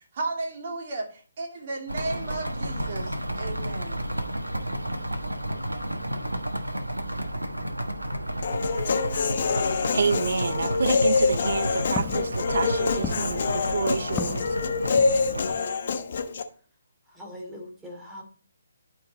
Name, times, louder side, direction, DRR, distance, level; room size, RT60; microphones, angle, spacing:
voice 1, 0.1-4.1, right 3 dB, 40° right, 2.5 m, -34 dB
sound 1, 1.9-15.6, right 1 dB, 90° right, 1.3 m, -32 dB
Human voice, 8.4-16.4, left 4 dB, 50° left, 1.1 m, -26 dB
voice 2, 9.9-14.4, right 5 dB, 60° right, 0.4 m, -28 dB
Walk footsteps, 11.2-15.7, left 9 dB, 15° left, 0.4 m, -39 dB
voice 3, 17.0-18.2, left 1 dB, 5° right, 2.6 m, -41 dB
12.0 x 5.2 x 4.0 m
figure-of-eight pair, 140°, 0 cm